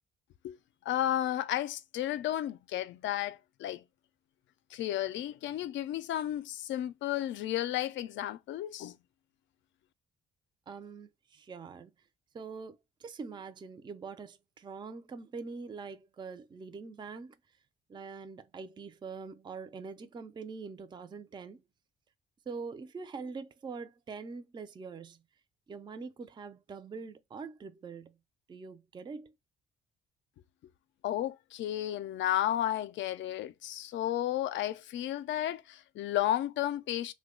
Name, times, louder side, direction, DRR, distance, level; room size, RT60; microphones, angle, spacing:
voice 1, 0.9-3.8 4.7-9.0 31.0-37.1, left 12 dB, 70° left, 0.4 m, -33 dB
voice 2, 10.7-11.9 12.3-17.4 17.9-21.6 22.5-25.2 25.7-28.2 28.5-29.3, right 4 dB, 25° right, 0.4 m, -44 dB
3.0 x 2.2 x 3.6 m
cardioid pair, 90°, 20 cm